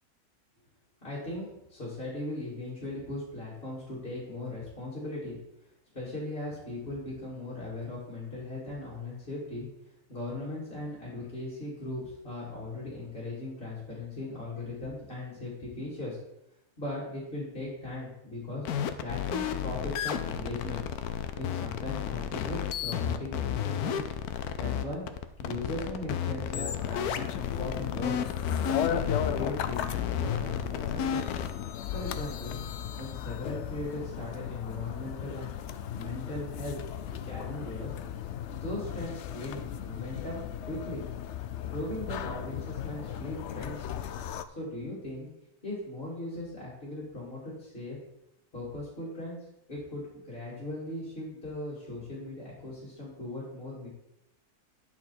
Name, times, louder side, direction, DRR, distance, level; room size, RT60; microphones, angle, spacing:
voice 1, 1.0-5.4 5.9-9.7 10.1-16.2 16.8-18.6 19.0-20.8 21.3-24.1 24.6-25.0 25.4-28.2 28.8-31.3 31.9-32.6 33.0-36.8 37.3-37.9 38.5-41.0 41.7-43.9 44.5-45.3 45.6-48.0 48.5-49.4 49.7-53.9, left 2 dB, 40° left, -8 dB, 3.2 m, -38 dB
sound 1, 18.6-31.6, left 8 dB, 85° left, 1.2 m, -32 dB
sound 2, 26.5-44.4, left 9 dB, 65° left, 0.7 m, -36 dB
10.5 x 5.8 x 4.5 m, 0.84 s
omnidirectional pair, 1.6 m